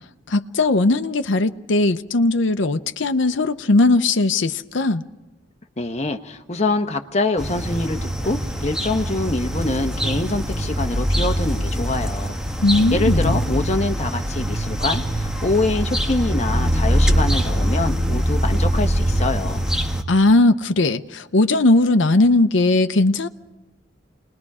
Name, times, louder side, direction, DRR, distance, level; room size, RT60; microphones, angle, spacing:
voice 1, 0.3-5.0 12.6-13.4 20.1-23.3, left 2 dB, 75° left, 0.7 m, -18 dB
voice 2, 5.8-12.4 12.9-19.7, left 2 dB, 35° left, 1.2 m, -25 dB
sound 1, 7.4-20.0, equal, 5° right, 1.3 m, -22 dB
28.0 x 21.0 x 4.9 m
head